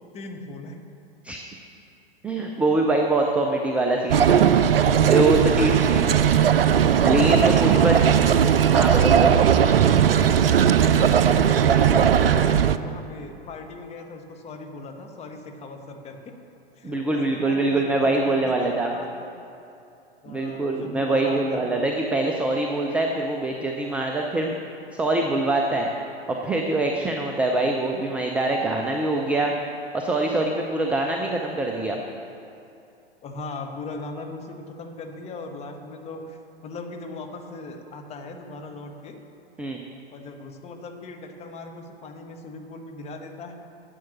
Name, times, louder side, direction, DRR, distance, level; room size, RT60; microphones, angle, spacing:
voice 1, 0.1-0.8 5.7-5.9 7.6-8.3 9.5-10.2 10.8-16.4 16.8-19.3 20.2-21.9 33.2-39.2 40.1-43.5, left 3 dB, 20° left, 4 dB, 1.1 m, -38 dB
voice 2, 2.2-4.4 4.7-6.1 7.0-7.9 8.7-9.5 16.8-18.9 20.3-24.5 24.9-25.9 26.3-29.5 29.9-32.0 39.6-39.8, right 2 dB, 5° right, 1 dB, 0.3 m, -24 dB
sound 1, 4.1-12.8, right 8 dB, 65° right, 0.5 m, -18 dB
10.5 x 7.7 x 7.2 m, 2.8 s
figure-of-eight pair, 100°, 30 cm